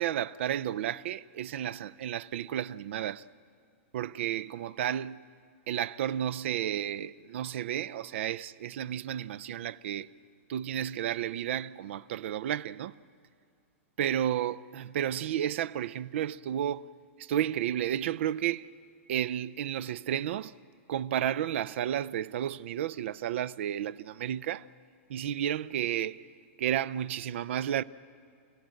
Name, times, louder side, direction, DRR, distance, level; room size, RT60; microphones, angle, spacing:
voice 1, 0.0-3.2 3.9-5.3 5.7-10.1 10.5-12.9 14.0-16.9 17.2-18.7 19.1-20.5 20.9-24.7 25.1-26.3 26.6-27.8, right 10 dB, 60° right, 0.5 m, -32 dB
28.5 x 16.5 x 7.7 m
supercardioid pair, 165°, 7 cm